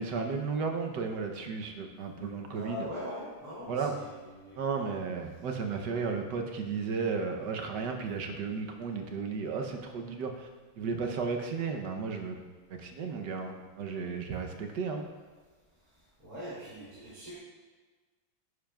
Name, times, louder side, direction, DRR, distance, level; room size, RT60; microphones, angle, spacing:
voice 1, 0.0-2.9 3.7-3.9 4.6-10.5 10.8-12.4 12.7-15.1, right 5 dB, 65° right, 3 dB, 1.4 m, -34 dB
voice 2, 2.5-5.0 16.2-17.4, left 1 dB, 20° right, -11 dB, 3.0 m, -42 dB
10.0 x 10.0 x 2.4 m, 1.3 s
omnidirectional pair, 2.1 m